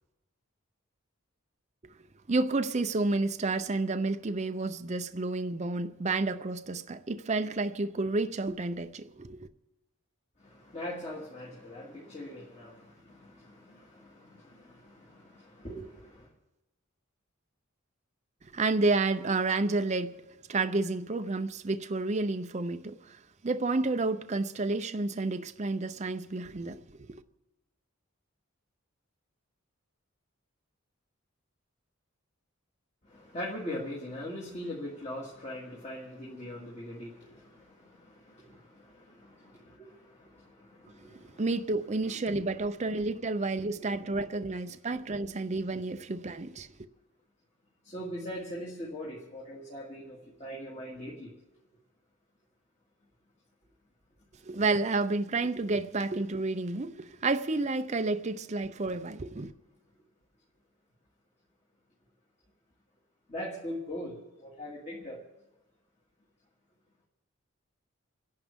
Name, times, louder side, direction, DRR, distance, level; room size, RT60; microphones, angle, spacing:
voice 1, 2.3-9.5 18.5-20.2 20.5-27.2 41.4-46.7 54.4-59.5, right 3 dB, 30° right, 0.6 m, -30 dB
voice 2, 10.4-16.3 33.0-41.4 43.8-44.1 47.8-51.3 63.3-65.2, left 1 dB, 30° left, 2.3 m, -41 dB
30.0 x 11.0 x 3.6 m
head